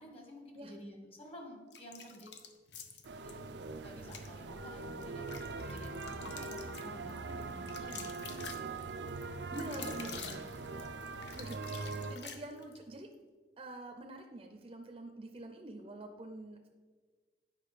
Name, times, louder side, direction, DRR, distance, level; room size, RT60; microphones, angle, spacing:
voice 1, 0.0-2.4 3.2-3.4 3.8-8.4 9.6-10.4, left 1 dB, 35° left, 1 dB, 1.6 m, -51 dB
sound 1, 1.7-3.3 4.0-4.3 4.8-12.8, left 6 dB, 75° left, 0.8 m, -48 dB
sound 2, 3.0-12.2, right 3 dB, 75° right, 0.5 m, -42 dB
voice 2, 9.5-10.1 11.3-13.1 13.6-16.7, right 1 dB, 30° right, 4 dB, 0.6 m, -46 dB
9.2 x 5.1 x 5.0 m, 1.5 s
head